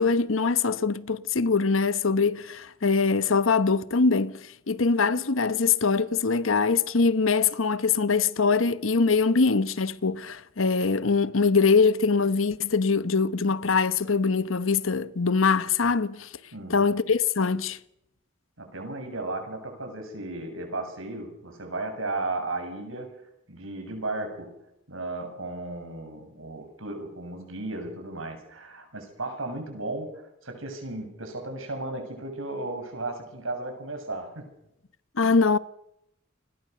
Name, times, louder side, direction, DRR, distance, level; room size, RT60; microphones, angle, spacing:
voice 1, 0.0-16.3 16.7-17.8 35.2-35.6, left 4 dB, 85° left, 1.0 m, -23 dB
voice 2, 16.5-16.9 18.6-24.6 24.9-34.5, right 2 dB, 90° right, 7.0 m, -35 dB
29.0 x 21.0 x 6.8 m
head